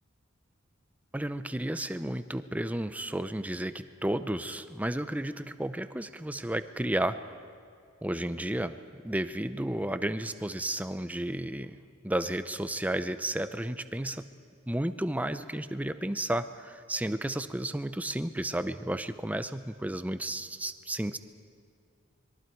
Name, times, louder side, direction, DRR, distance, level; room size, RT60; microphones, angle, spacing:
voice 1, 1.1-7.2 8.0-11.8 12.0-14.2 14.7-21.2, right 1 dB, 5° right, 11 dB, 0.6 m, -32 dB
26.0 x 22.0 x 4.6 m, 2.3 s
head